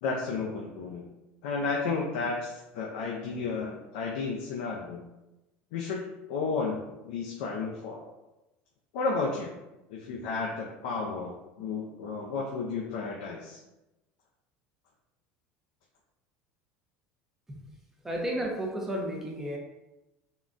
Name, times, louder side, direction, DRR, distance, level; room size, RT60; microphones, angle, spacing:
voice 1, 0.0-1.0 1.4-5.0 5.7-6.0 6.3-8.0 8.9-9.5 9.9-13.6, left 4 dB, 85° left, -1 dB, 0.4 m, -32 dB
voice 2, 18.0-19.6, right 1 dB, 10° right, -1 dB, 0.5 m, -32 dB
3.6 x 2.1 x 2.5 m, 0.99 s
cardioid pair, 160°, 4 cm